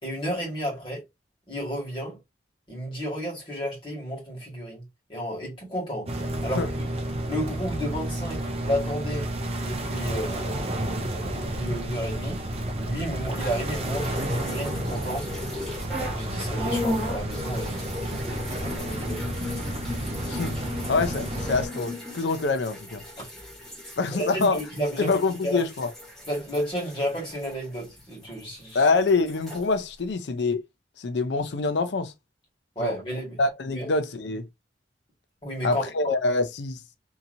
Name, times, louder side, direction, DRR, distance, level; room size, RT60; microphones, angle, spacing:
voice 1, 0.0-1.0 1.5-2.2 2.7-4.8 5.1-6.1 6.4-6.9 7.3-9.3 9.6-10.6 11.1-12.4 12.7-15.2 16.1-18.0 18.3-19.3 24.1-25.1 25.4-25.6 26.2-28.9 32.7-33.4 33.7-33.9 35.4-36.1, equal, 25° left, 1.6 m, -32 dB
sound 1, 6.1-21.7, right 1 dB, 35° right, 0.5 m, -31 dB
sound 2, 13.4-16.2 16.5-28.4 28.7-29.6, left 1 dB, ahead, 1.4 m, -36 dB
voice 2, 20.3-20.6 20.9-23.0 24.0-24.6 25.0-25.9 28.7-30.6 31.0-32.1 32.8-33.0 33.4-34.5 35.6-37.0, left 3 dB, 70° left, 0.5 m, -25 dB
2.8 x 2.7 x 2.5 m
head